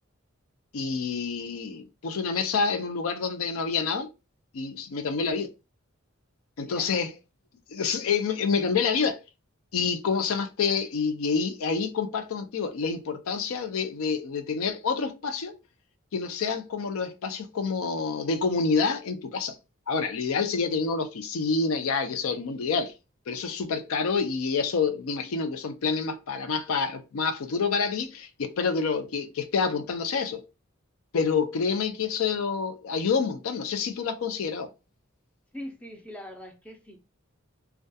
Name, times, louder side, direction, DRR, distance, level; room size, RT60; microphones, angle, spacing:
voice 1, 0.7-4.1 4.5-5.5 6.6-7.1 7.7-9.2 9.7-15.5 16.1-19.6 19.9-22.9 23.3-30.4 31.1-34.7, left 5 dB, 80° left, 0.4 m, -28 dB
voice 2, 6.6-7.1 35.5-37.0, left 1 dB, 5° left, 0.4 m, -42 dB
2.2 x 2.2 x 2.6 m
head